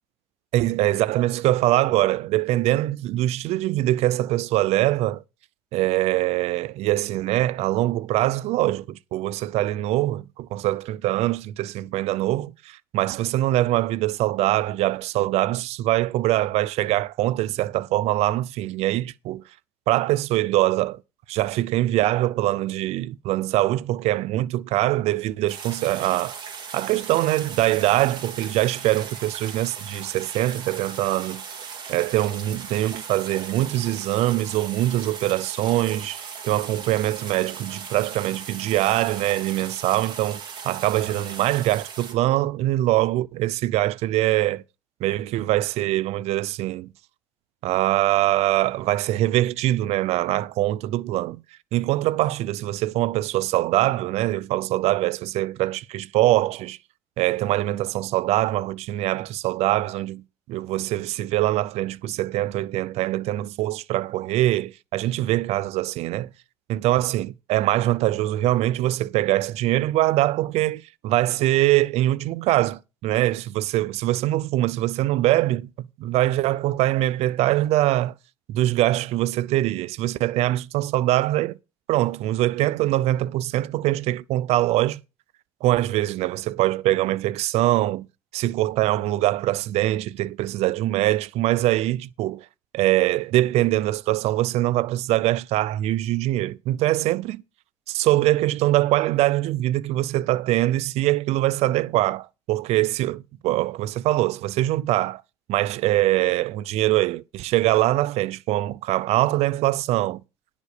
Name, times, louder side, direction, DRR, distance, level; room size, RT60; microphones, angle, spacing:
voice 1, 0.5-5.2 5.7-19.4 19.9-21.0 21.3-26.4 26.7-31.4 31.9-44.6 45.0-46.9 47.6-51.4 51.7-56.8 57.2-60.2 60.5-66.3 66.7-78.1 78.5-81.6 81.9-85.0 85.6-88.1 88.3-92.5 92.7-97.4 97.9-105.2 105.5-110.2, right 15 dB, 65° right, 0.6 m, -23 dB
sound 1, 25.5-42.1, right 6 dB, 40° right, 3.0 m, -38 dB
10.5 x 5.1 x 6.6 m
supercardioid pair, 95°, 12 cm